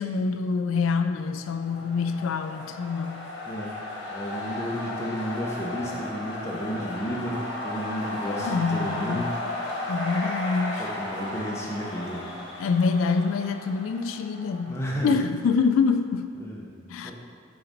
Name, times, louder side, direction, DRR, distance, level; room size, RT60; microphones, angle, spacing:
voice 1, 0.0-3.3 8.4-9.3 9.9-10.9 12.6-16.3 16.9-17.1, left 5 dB, 85° left, 8 dB, 0.3 m, -26 dB
sound 1, 1.2-15.0, left 2 dB, 55° left, 1.3 m, -35 dB
voice 2, 4.1-9.3 10.8-12.3 14.7-15.2 16.4-16.7 17.0-17.1, equal, 15° left, -3 dB, 0.8 m, -32 dB
5.7 x 4.1 x 5.0 m, 2.1 s
head